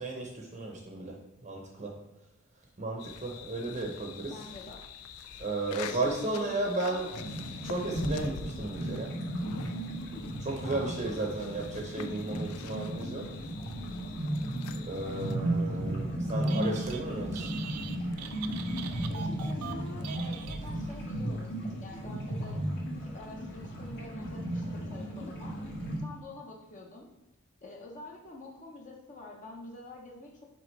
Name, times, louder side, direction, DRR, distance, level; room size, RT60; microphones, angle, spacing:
voice 1, 0.0-2.0 2.8-4.4 5.4-7.1 7.6-9.2 10.4-13.3 14.8-17.5, right 2 dB, 35° right, 0 dB, 0.8 m, -34 dB
sound 1, 3.0-15.4, left 6 dB, 70° left, 0.4 m, -46 dB
voice 2, 4.3-4.8 5.9-7.1 8.7-8.9 10.6-10.9 19.1-22.6 23.1-25.6 26.0-27.1 27.6-30.4, left 2 dB, 35° left, -1 dB, 0.8 m, -46 dB
sound 2, 7.1-26.0, right 1 dB, 55° left, 1.6 m, -35 dB
Telephone, 16.3-17.0 17.3-21.0, right 7 dB, 90° right, 0.5 m, -43 dB
6.1 x 4.9 x 3.1 m, 0.98 s
head